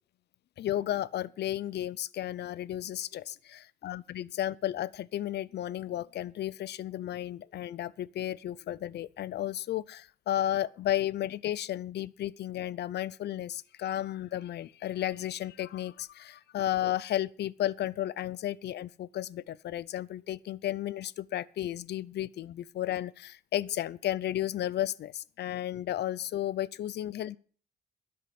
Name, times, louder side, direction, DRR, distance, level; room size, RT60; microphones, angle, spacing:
voice 1, 0.6-27.4, left 12 dB, 85° left, 0.6 m, -33 dB
13.0 x 10.5 x 6.0 m
cardioid pair, 120°, 17 cm